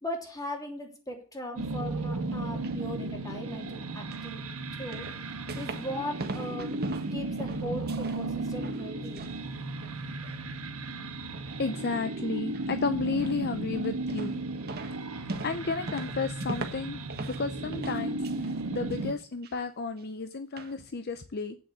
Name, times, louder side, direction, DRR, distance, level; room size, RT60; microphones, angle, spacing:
voice 1, 0.0-4.4 4.8-5.1 5.5-6.8 7.1-9.3, left 1 dB, 15° left, 2 dB, 3.1 m, -38 dB
sound 1, 1.6-19.1, right 2 dB, 80° right, 1.6 m, -35 dB
sound 2, 2.3-2.8 4.1-4.3 4.9-5.9 6.2-8.2 8.5-9.4 9.7-10.4 10.8-10.9 11.3-11.6 12.5-12.7 13.2-13.6 14.1-14.4 14.7-17.5 17.7-18.6 18.9-19.5 20.0-20.1 20.6-20.7, right 2 dB, 45° right, 1.5 m, -40 dB
voice 2, 11.6-14.4 15.1-17.0 17.4-21.6, left 4 dB, 50° left, 10 dB, 0.6 m, -33 dB
8.7 x 7.3 x 8.4 m, 0.40 s
head